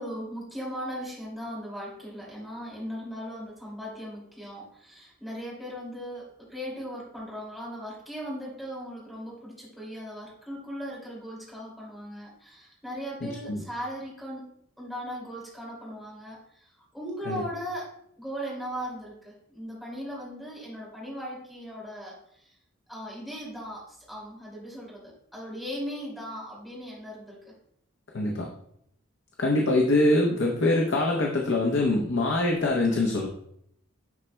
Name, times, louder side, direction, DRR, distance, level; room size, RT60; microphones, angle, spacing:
voice 1, 0.0-17.9 18.2-22.5 22.9-27.5, equal, ahead, -6 dB, 2.4 m, -38 dB
voice 2, 28.1-28.5 29.4-33.3, left 2 dB, 60° left, 0 dB, 0.7 m, -24 dB
10.5 x 4.1 x 2.2 m, 0.72 s
head